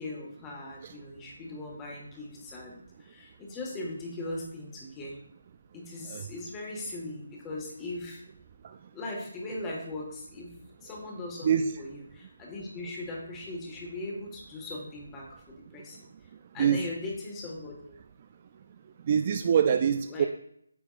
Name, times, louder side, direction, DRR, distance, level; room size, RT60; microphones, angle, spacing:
voice 1, 0.0-5.2 5.7-8.2 8.9-16.1 16.5-18.0 19.4-19.6 20.1-20.3, left 2 dB, 15° left, -1 dB, 1.6 m, -39 dB
voice 2, 19.1-20.3, right 8 dB, 35° right, 8 dB, 0.3 m, -24 dB
9.0 x 6.9 x 2.4 m, 0.72 s
figure-of-eight pair, 165°, 0 cm